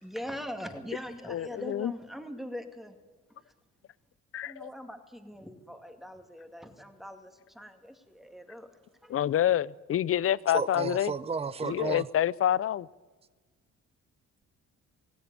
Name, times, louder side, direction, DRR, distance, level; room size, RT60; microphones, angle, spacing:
voice 1, 0.0-3.0 3.3-3.5 4.4-9.2 11.6-11.7, equal, ahead, 2.2 m, -42 dB
voice 2, 1.3-1.9 4.3-4.7 9.1-11.1 11.6-12.9, left 11 dB, 50° left, 0.5 m, -27 dB
voice 3, 10.5-12.1, right 5 dB, 20° right, 0.7 m, -32 dB
16.5 x 16.5 x 9.5 m
cardioid pair, 90°, 30 cm